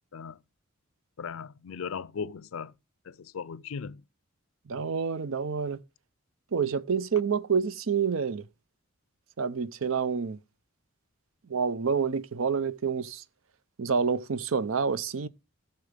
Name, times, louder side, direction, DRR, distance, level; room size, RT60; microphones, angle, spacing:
voice 1, 1.2-2.7 3.1-4.0, left 6 dB, 85° left, 0.5 m, -37 dB
voice 2, 4.7-5.8 6.5-8.4 9.4-10.4 11.5-13.2 13.8-15.3, right 6 dB, 75° right, 0.6 m, -28 dB
15.5 x 6.9 x 3.4 m
head